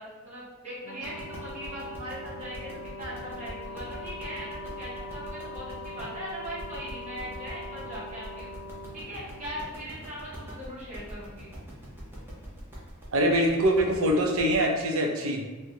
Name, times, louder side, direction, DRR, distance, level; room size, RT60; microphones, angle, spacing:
voice 1, 0.0-8.5 8.9-11.5, equal, 35° right, -9 dB, 1.0 m, -40 dB
Brass instrument, 0.8-9.6, left 2 dB, 65° left, 0.6 m, -42 dB
sound 1, 1.0-14.6, equal, 10° right, 0.7 m, -44 dB
voice 2, 13.1-15.5, right 1 dB, 75° right, 1 dB, 0.6 m, -24 dB
3.7 x 2.1 x 2.9 m, 1.3 s
head